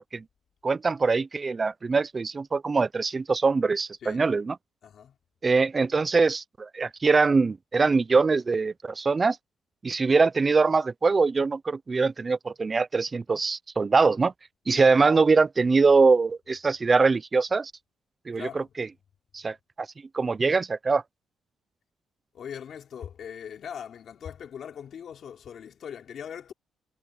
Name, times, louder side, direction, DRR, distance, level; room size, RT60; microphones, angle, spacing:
voice 1, 0.6-4.6 5.4-9.4 9.8-14.3 14.7-17.7 18.3-18.9 19.3-19.9 20.1-21.0, right 4 dB, 30° right, 0.5 m, -23 dB
voice 2, 4.8-5.1 14.7-15.1 18.3-18.7 22.3-26.5, left 8 dB, 60° left, 3.2 m, -41 dB
cardioid pair, 90°, 0 cm